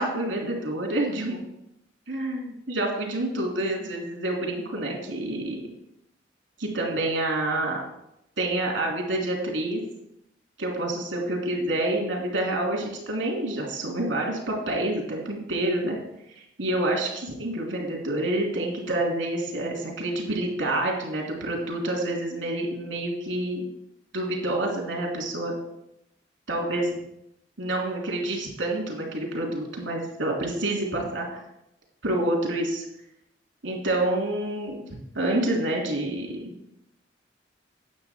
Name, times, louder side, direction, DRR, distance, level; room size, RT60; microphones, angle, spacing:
voice 1, 0.0-1.4 2.1-5.6 6.6-7.8 8.4-9.8 10.6-16.0 16.3-23.6 24.1-25.6 26.5-27.0 27.6-31.4 32.0-32.9 33.6-34.8 35.1-36.5, right 1 dB, 85° right, -1 dB, 3.0 m, -28 dB
9.5 x 7.3 x 4.5 m, 0.83 s
head